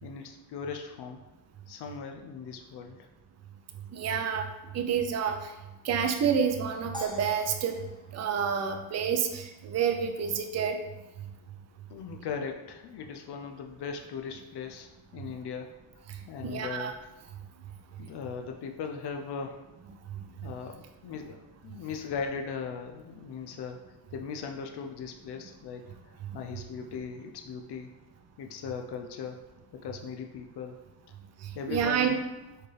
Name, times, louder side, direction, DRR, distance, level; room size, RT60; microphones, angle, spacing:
voice 1, 0.0-1.2 1.7-3.1 11.9-15.7 16.3-17.0 18.0-19.7 20.4-25.9 26.3-27.9 28.4-29.4 29.7-30.8 31.5-32.3, left 5 dB, 75° left, 4 dB, 0.5 m, -38 dB
voice 2, 3.9-4.5 4.7-5.5 5.8-7.8 8.1-10.8 16.1-16.2 16.4-16.9 31.4-32.1, right 7 dB, 40° right, 4 dB, 0.4 m, -28 dB
sound 1, 6.9-9.3, left 1 dB, 10° left, 0.7 m, -45 dB
4.4 x 2.4 x 3.2 m, 1.0 s
cardioid pair, 85°, 41 cm